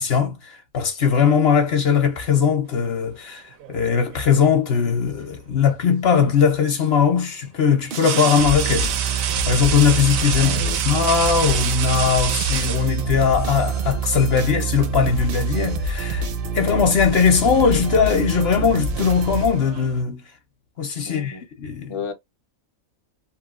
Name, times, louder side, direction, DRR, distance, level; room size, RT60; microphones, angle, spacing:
voice 1, 0.0-3.4 3.7-16.3 16.5-20.2 20.8-21.9, left 6 dB, 55° left, 0.9 m, -20 dB
sound 1, 3.6-4.5 6.2-6.4 7.9-13.4 14.6-14.8 15.2-15.9 16.2-16.6 17.4-20.0, right 9 dB, 80° right, 1.0 m, -29 dB
Goal in Space, 7.9-20.0, right 4 dB, 55° right, 0.6 m, -26 dB
voice 2, 10.3-10.8 21.0-21.4 21.9-22.1, left 4 dB, 35° left, 0.5 m, -32 dB
3.0 x 2.4 x 2.3 m
omnidirectional pair, 1.4 m